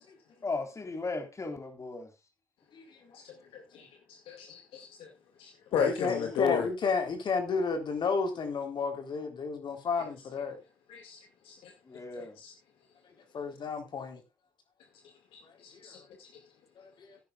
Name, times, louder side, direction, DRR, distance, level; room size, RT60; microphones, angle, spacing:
voice 1, 0.4-2.1 11.9-12.4, left 3 dB, 35° left, 3.9 m, -36 dB
voice 2, 2.7-3.2 5.7-10.6 13.3-14.2 15.4-15.5 15.8-16.0 17.0-17.2, left 5 dB, 55° left, 3.7 m, -32 dB
voice 3, 4.3-5.1 5.4-6.7 10.9-11.2 11.5-11.7 12.2-12.5 15.3-16.3, left 7 dB, 75° left, 2.1 m, -34 dB
16.5 x 10.0 x 2.4 m
hypercardioid pair, 55°, 9 cm